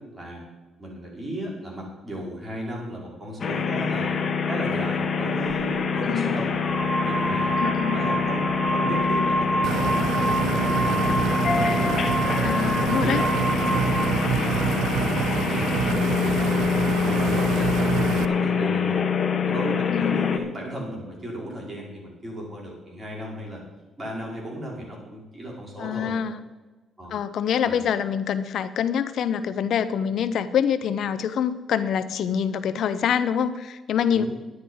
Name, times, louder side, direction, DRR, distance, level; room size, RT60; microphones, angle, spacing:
voice 1, 0.1-0.4 0.8-4.1 4.5-6.6 7.0-7.6 7.9-11.2 11.5-12.1 12.8-16.7 17.0-19.0 19.4-23.6 24.0-26.1 27.0-27.2 27.6-27.8 34.1-34.3, equal, 20° right, -2 dB, 4.9 m, -35 dB
sound 1, 3.4-20.4, left 5 dB, 50° left, 1.2 m, -25 dB
sound 2, 5.5-5.7 6.5-14.2, right 2 dB, ahead, 1.2 m, -28 dB
voice 2, 6.0-6.4 7.6-8.0 12.4-13.2 19.9-20.5 25.8-26.4 27.1-34.2, left 8 dB, 70° left, 14 dB, 0.6 m, -25 dB
sound 3, 9.6-18.3, right 9 dB, 85° right, 0.5 m, -27 dB
11.5 x 10.0 x 5.5 m, 1.1 s
cardioid pair, 90°, 0 cm